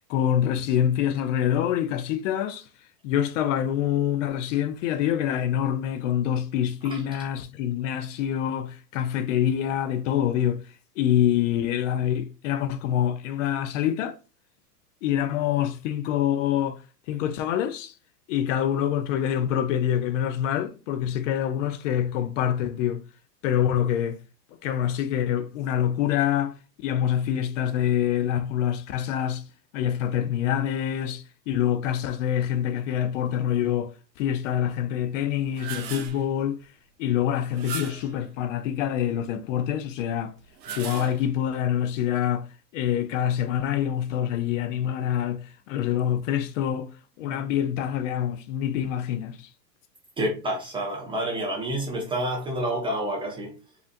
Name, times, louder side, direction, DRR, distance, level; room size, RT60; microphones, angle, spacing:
voice 1, 0.1-2.7 3.0-10.6 11.0-14.2 15.0-16.8 17.1-17.9 18.3-23.0 23.4-24.2 24.6-29.4 29.7-33.9 34.2-36.6 37.0-40.3 40.7-42.5 42.7-46.9 47.2-49.5, left 10 dB, 50° left, 0.5 m, -26 dB
sound 1, 35.3-36.3 37.5-38.2 40.4-41.5, right 6 dB, 90° right, 1.1 m, -37 dB
voice 2, 50.2-53.5, right 1 dB, 10° right, 0.4 m, -29 dB
4.9 x 2.6 x 2.5 m
hypercardioid pair, 120°, 49 cm